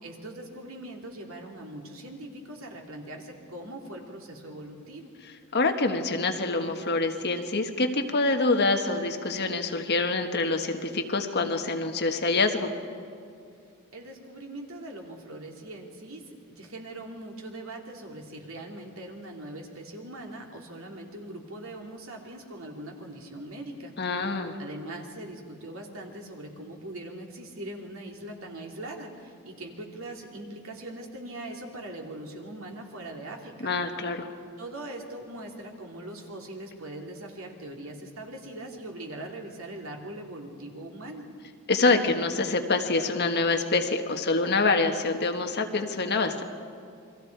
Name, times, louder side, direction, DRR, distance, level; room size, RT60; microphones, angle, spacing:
voice 1, 0.0-5.1 13.9-23.9 24.6-33.7 34.6-41.2, right 1 dB, 70° right, 1 dB, 2.9 m, -41 dB
voice 2, 5.5-12.7 24.0-24.6 33.6-34.3 41.7-46.4, left 3 dB, 50° left, 5 dB, 1.5 m, -26 dB
29.0 x 22.5 x 4.7 m, 2.5 s
head